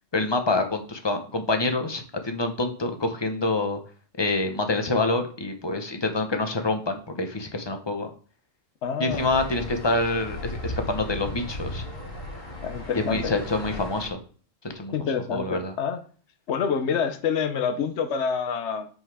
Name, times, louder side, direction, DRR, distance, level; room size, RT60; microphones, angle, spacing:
voice 1, 0.1-3.8 4.2-8.1 9.0-11.8 12.9-14.2 14.7-14.9 15.3-15.7, left 2 dB, 25° left, 6 dB, 1.0 m, -26 dB
voice 2, 8.8-9.3 12.6-13.3 14.9-16.0 16.5-18.9, left 6 dB, 65° left, 8 dB, 1.1 m, -27 dB
sound 1, 9.1-14.1, left 1 dB, 85° left, 2.8 m, -36 dB
5.6 x 5.4 x 4.8 m, 0.42 s
omnidirectional pair, 1.3 m